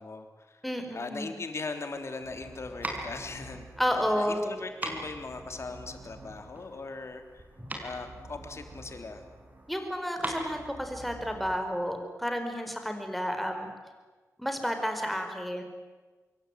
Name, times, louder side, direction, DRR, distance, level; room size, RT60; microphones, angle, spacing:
voice 1, 0.0-0.6 0.9-3.7 4.2-7.4 7.8-9.2, left 3 dB, 50° left, 6 dB, 3.3 m, -39 dB
voice 2, 0.6-1.4 3.8-4.5 9.7-13.7 14.4-15.6, equal, ahead, 5 dB, 4.7 m, -31 dB
sound 1, 1.6-11.6, right 2 dB, 45° right, 6.1 m, -50 dB
sound 2, 1.9-11.7, right 1 dB, 30° right, 5.5 m, -41 dB
26.0 x 22.5 x 9.3 m, 1.3 s
wide cardioid pair, 100°, 6 cm